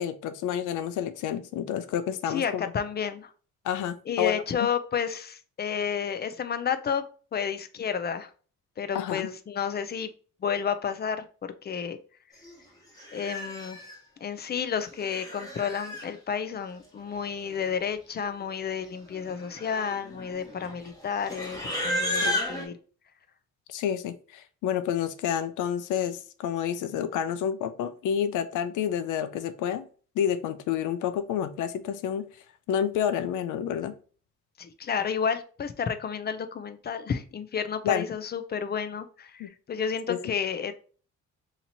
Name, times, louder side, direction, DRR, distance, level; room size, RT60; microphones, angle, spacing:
voice 1, 0.0-2.6 3.6-4.4 8.9-9.3 22.2-22.4 23.7-29.8 30.2-32.2 32.7-33.9 37.8-38.1 39.4-39.5 40.1-40.2, left 9 dB, 85° left, 12 dB, 0.5 m, -29 dB
voice 2, 2.3-3.3 4.1-7.0 7.3-8.3 8.8-10.1 10.4-12.0 13.1-13.8 14.2-22.7 34.6-40.7, left 7 dB, 35° left, 10 dB, 0.5 m, -31 dB
Livestock farm animals working animals, 12.4-12.6 13.0-13.9 14.8-16.1 17.1-17.2 17.4-17.8 18.1-18.4 19.1-22.6, left 1 dB, 10° left, 1.3 m, -33 dB
2.9 x 2.8 x 3.9 m, 0.40 s
cardioid pair, 90°, 30 cm